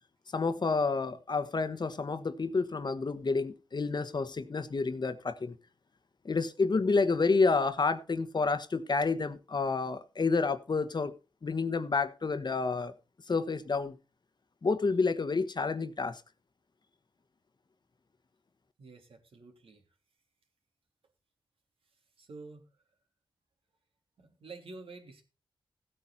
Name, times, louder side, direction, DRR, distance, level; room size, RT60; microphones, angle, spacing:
voice 1, 0.3-5.5 6.2-11.1 11.4-12.9 13.3-14.0 14.6-16.2, left 4 dB, 50° left, 1.2 m, -29 dB
voice 2, 18.8-19.8 22.2-22.6 24.2-25.2, right 3 dB, 80° right, 3.2 m, -49 dB
15.5 x 9.0 x 4.1 m
cardioid pair, 60°, 9 cm